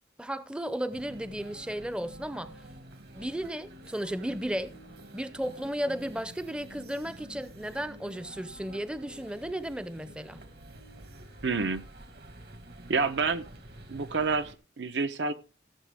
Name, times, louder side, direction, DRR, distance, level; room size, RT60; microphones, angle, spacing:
voice 1, 0.2-2.6 3.1-4.7 5.1-10.4, right 1 dB, 5° right, 0.5 m, -34 dB
sound 1, 0.9-14.5, right 1 dB, 60° right, 1.5 m, -49 dB
voice 2, 11.4-11.9 12.9-13.4 13.9-15.3, right 4 dB, 80° right, 0.8 m, -28 dB
16.5 x 7.4 x 3.5 m
head